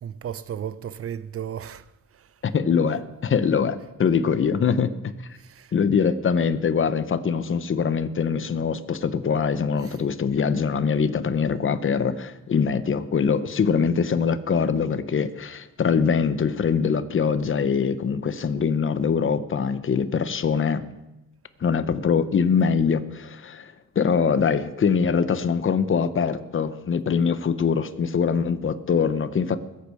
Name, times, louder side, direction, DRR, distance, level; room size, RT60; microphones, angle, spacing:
voice 1, 0.0-1.9 2.1-2.3 5.4-5.7 9.8-10.0, right 9 dB, 45° right, 0.6 m, -35 dB
voice 2, 2.4-5.1 5.7-20.9 21.6-29.6, left 6 dB, 40° left, 0.8 m, -23 dB
21.0 x 8.4 x 4.9 m
wide cardioid pair, 140°, 31 cm